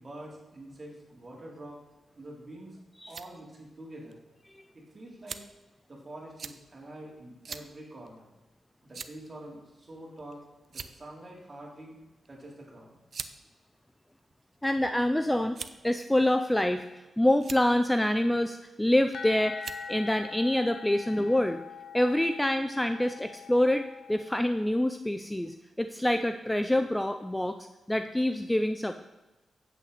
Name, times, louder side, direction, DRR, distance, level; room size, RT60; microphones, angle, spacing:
voice 1, 0.0-1.8 2.1-2.8 3.1-4.2 4.7-5.4 5.9-8.3 8.8-10.4 10.7-12.0 12.3-12.9, right 1 dB, 35° right, -3 dB, 3.4 m, -46 dB
sound 1, 2.7-3.3 4.1-4.2 5.3-5.6 6.4-6.6 7.4-7.7 8.1-8.2 8.9-9.3 10.2-10.3 10.6-11.1 12.2-12.4 13.1-13.4 14.2-14.8 15.5-15.9 16.7-17.0 17.3-17.6 18.8-19.1 19.6-19.9, right 5 dB, 55° right, 0.5 m, -41 dB
voice 2, 14.6-15.6 15.8-19.6 19.9-21.6 21.9-28.9, left 1 dB, 10° left, 8 dB, 0.5 m, -26 dB
sound 2, 19.1-24.7, left 6 dB, 85° left, 0.7 m, -44 dB
8.3 x 8.1 x 4.1 m, 1.1 s
cardioid pair, 75°, 0 cm